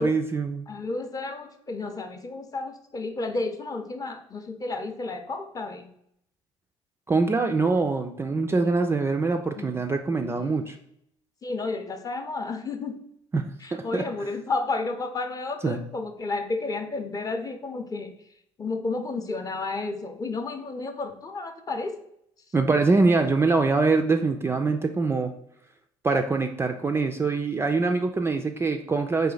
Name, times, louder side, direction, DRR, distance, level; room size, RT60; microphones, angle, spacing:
voice 1, 0.0-0.6 7.1-10.8 13.3-13.4 13.7-14.0 15.6-15.8 22.5-25.3 26.0-29.3, right 3 dB, 20° right, 5 dB, 0.3 m, -24 dB
voice 2, 0.7-5.9 8.6-8.7 9.6-9.8 10.1-10.5 11.4-13.0 13.6-18.1 18.6-22.0, left 3 dB, 25° left, 6 dB, 0.6 m, -32 dB
3.9 x 2.7 x 3.9 m, 0.73 s
hypercardioid pair, 60°, 14 cm